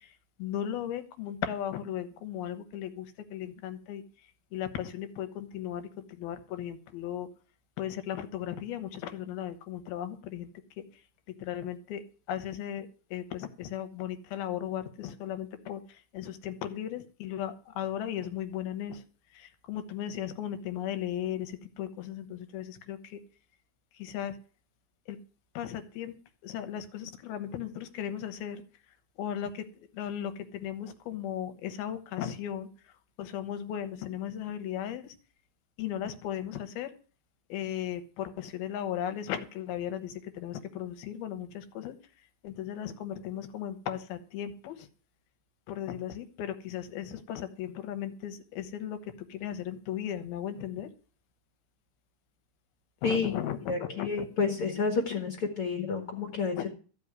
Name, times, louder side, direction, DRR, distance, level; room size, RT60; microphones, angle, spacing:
voice 1, 0.4-4.0 4.5-5.9 6.2-7.3 7.8-10.5 11.4-12.0 12.3-15.8 16.1-19.0 19.4-23.2 24.0-24.3 25.1-25.2 25.6-26.1 26.4-28.6 29.2-29.6 29.9-32.7 33.2-35.1 35.8-36.9 37.5-41.9 42.4-44.9 45.7-49.0 49.3-50.9 53.0-54.3 56.6-56.7, left 10 dB, 85° left, 10 dB, 3.0 m, -36 dB
voice 2, 53.0-56.7, left 4 dB, 45° left, 4 dB, 2.1 m, -30 dB
14.0 x 5.6 x 9.6 m, 0.38 s
omnidirectional pair, 4.3 m